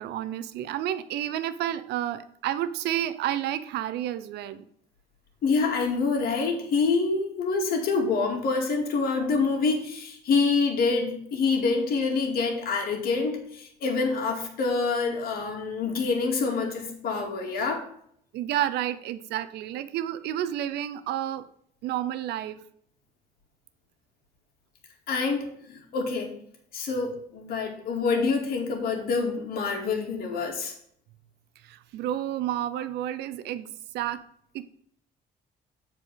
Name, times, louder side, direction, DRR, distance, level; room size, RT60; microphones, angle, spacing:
voice 1, 0.0-4.6 18.3-21.4 21.8-22.6 31.6-34.2 34.5-34.6, right 12 dB, 80° right, 12 dB, 0.7 m, -30 dB
voice 2, 5.4-17.8 25.1-26.3 26.7-30.7, left 4 dB, 60° left, 1 dB, 2.4 m, -26 dB
7.8 x 4.5 x 7.2 m, 0.66 s
cardioid pair, 110°, 17 cm